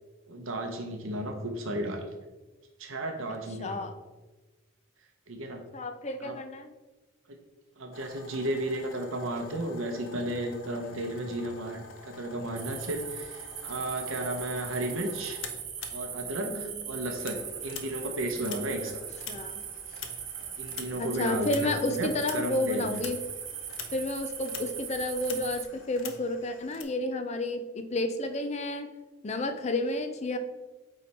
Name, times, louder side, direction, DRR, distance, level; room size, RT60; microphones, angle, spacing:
voice 1, 0.3-2.0 2.8-3.8 5.3-5.6 6.2-6.4 7.8-15.4 15.9-19.0 19.9-20.0 20.3-23.0, right 1 dB, 70° right, 3 dB, 0.8 m, -34 dB
voice 2, 3.6-3.9 5.7-6.7 16.4-17.0 18.9-19.0 19.3-19.6 21.0-23.2 23.9-28.9 29.2-30.4, left 2 dB, 30° left, 8 dB, 0.5 m, -31 dB
sound 1, 7.9-16.6 16.8-26.8, left 6 dB, 65° left, 0.7 m, -46 dB
sound 2, 12.6-25.6, right 8 dB, 35° right, 0.6 m, -40 dB
8.5 x 3.3 x 4.2 m, 1.2 s
head